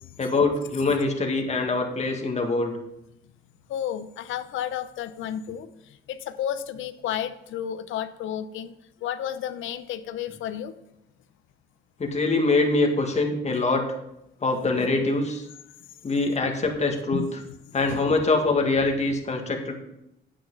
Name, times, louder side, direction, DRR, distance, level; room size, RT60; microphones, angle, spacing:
voice 1, 0.2-2.7 12.0-13.8 14.4-15.5 16.0-17.2 17.7-19.7, left 3 dB, 35° left, 2 dB, 2.0 m, -24 dB
voice 2, 3.7-8.7 9.0-10.7 17.1-17.3 17.9-18.0, left 10 dB, 85° left, 12 dB, 0.7 m, -32 dB
8.8 x 8.7 x 4.0 m, 0.84 s
cardioid pair, 90°, 20 cm